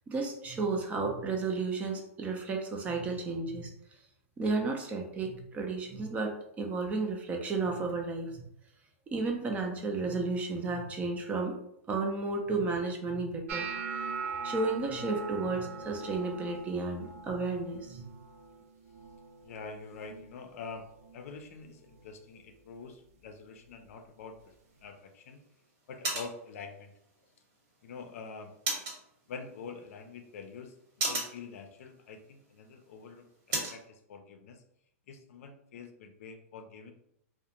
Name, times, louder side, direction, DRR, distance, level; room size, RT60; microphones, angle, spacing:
voice 1, 0.1-3.7 4.4-8.4 9.1-11.6 11.9-13.7 14.4-18.1, right 3 dB, 20° right, 2 dB, 0.4 m, -33 dB
sound 1, 13.5-19.6 19.9-20.4 20.7-21.3 21.9-22.1 23.9-24.0, right 5 dB, 70° right, 0.5 m, -41 dB
voice 2, 19.4-20.9 21.1-24.5 24.8-25.4 25.9-26.9 27.8-28.5 29.3-34.6 35.1-36.9, left 5 dB, 75° left, 6 dB, 0.4 m, -46 dB
sound 2, 24.4-33.8, right 2 dB, 45° right, 1.1 m, -40 dB
2.4 x 2.1 x 2.9 m, 0.77 s
hypercardioid pair, 140°, 8 cm